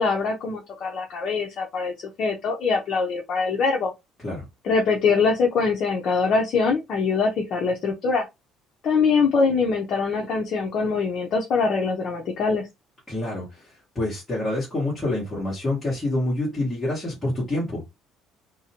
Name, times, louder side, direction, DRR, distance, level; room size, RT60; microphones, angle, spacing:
voice 1, 0.0-3.9 4.6-8.2 8.8-12.7, left 4 dB, 40° left, 0.5 m, -23 dB
voice 2, 13.1-17.8, left 1 dB, 10° left, 1.1 m, -27 dB
2.5 x 2.1 x 2.8 m
cardioid pair, 170°, 0 cm